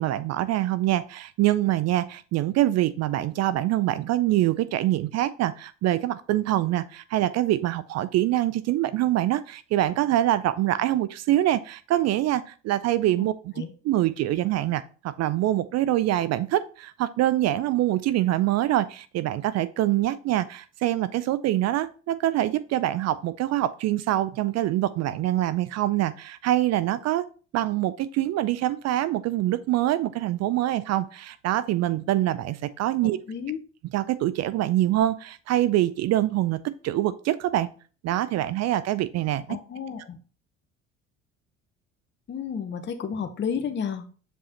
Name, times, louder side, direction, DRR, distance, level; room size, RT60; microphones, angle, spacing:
voice 1, 0.0-13.5 13.8-27.3 27.5-33.2 33.9-37.7 38.0-39.5, right 14 dB, 50° right, 16 dB, 0.5 m, -25 dB
voice 2, 33.0-33.6 39.5-40.2 42.3-44.1, left 7 dB, 30° left, 7 dB, 0.8 m, -32 dB
6.8 x 5.1 x 2.8 m, 0.38 s
hypercardioid pair, 65°, 36 cm